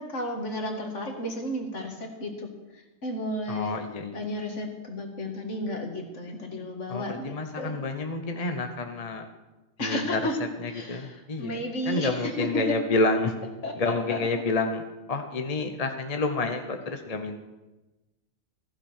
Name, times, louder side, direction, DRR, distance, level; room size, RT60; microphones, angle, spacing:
voice 1, 0.0-2.5 3.0-3.8 4.1-7.8 9.8-10.4 10.7-12.6 13.6-14.2, left 1 dB, 55° left, 2 dB, 2.3 m, -33 dB
voice 2, 3.5-4.2 6.9-9.3 9.8-10.2 10.6-13.4 13.7-17.4, left 3 dB, 30° left, 6 dB, 0.9 m, -29 dB
15.0 x 14.5 x 4.5 m, 1.1 s
omnidirectional pair, 1.5 m